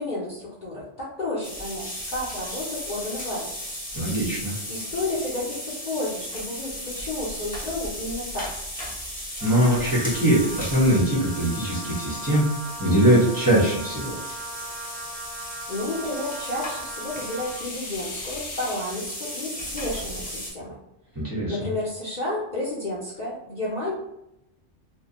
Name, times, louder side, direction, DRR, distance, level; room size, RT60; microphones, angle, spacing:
voice 1, 0.0-3.5 4.7-8.5 15.7-20.8 21.5-23.9, left 2 dB, 50° left, -7 dB, 0.6 m, -31 dB
sound 1, 1.4-20.5, equal, 10° left, 0.6 m, -36 dB
voice 2, 3.9-4.5 9.4-12.4 12.8-14.2 21.1-21.6, right 1 dB, 20° right, -9 dB, 1.0 m, -21 dB
Wind instrument woodwind instrument, 9.4-17.7, right 2 dB, 40° right, 0.3 m, -39 dB
sound 2, 12.1-12.9 14.0-15.1 17.2-19.1, left 3 dB, 70° left, 0.9 m, -41 dB
2.3 x 2.2 x 2.8 m, 0.85 s
omnidirectional pair, 1.2 m